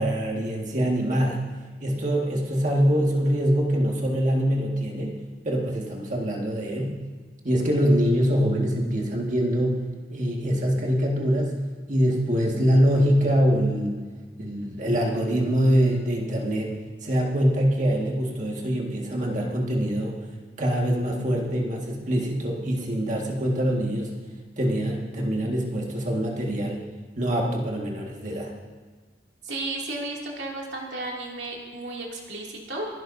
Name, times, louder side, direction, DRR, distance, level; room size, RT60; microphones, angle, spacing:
voice 1, 0.0-1.4 1.8-5.2 5.4-6.9 7.4-9.8 10.1-11.5 11.9-13.9 14.4-20.2 20.6-24.1 24.6-26.9 27.2-28.5, equal, 45° right, -1 dB, 1.8 m, -24 dB
voice 2, 29.4-32.9, right 2 dB, 75° right, -2 dB, 2.6 m, -33 dB
26.0 x 12.0 x 2.7 m, 1.4 s
head